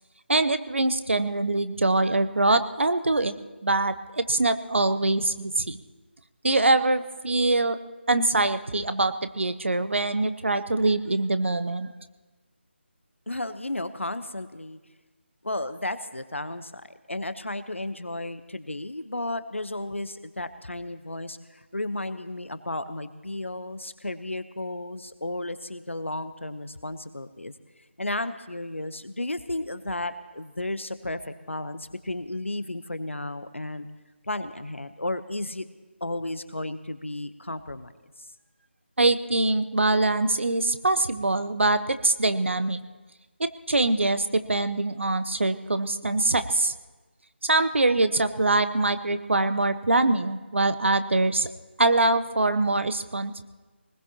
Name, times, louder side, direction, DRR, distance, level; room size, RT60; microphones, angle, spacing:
voice 1, 0.3-3.4 3.6-5.8 6.4-7.8 8.1-11.9 39.0-42.8 43.4-46.7 47.4-51.5 51.8-53.4, right 2 dB, 75° right, 12 dB, 0.9 m, -23 dB
voice 2, 13.3-14.8 15.4-27.5 28.0-31.2 31.5-33.9 34.3-35.6 36.0-37.9 38.2-38.3, left 2 dB, 85° left, 12 dB, 0.9 m, -33 dB
21.0 x 20.0 x 2.9 m, 1.2 s
figure-of-eight pair, 155°, 7 cm